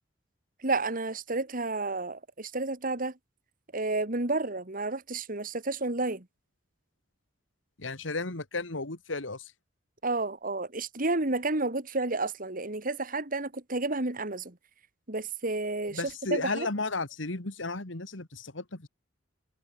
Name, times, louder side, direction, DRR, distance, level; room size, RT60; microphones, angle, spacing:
voice 1, 0.6-3.1 3.7-6.3 10.0-14.6 15.1-16.0 16.3-16.7, right 2 dB, 45° right, 2.6 m, -31 dB
voice 2, 7.8-9.5 15.9-18.9, left 3 dB, 85° left, 2.5 m, -34 dB
head